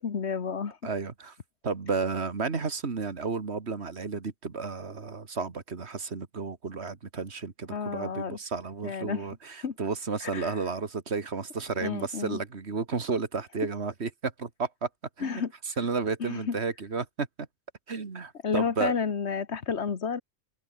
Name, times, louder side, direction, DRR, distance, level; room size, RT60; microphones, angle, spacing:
voice 1, 0.0-0.8 7.7-8.4 8.8-9.3 9.6-9.8 10.2-10.6 11.8-12.4 15.2-15.5 16.2-16.6 18.4-20.2, left 6 dB, 85° left, 1.7 m, -31 dB
voice 2, 0.8-1.4 1.6-14.9 15.2-15.4 15.8-17.3 17.9-18.9, right 4 dB, 75° right, 2.1 m, -32 dB
open air
omnidirectional pair, 1.1 m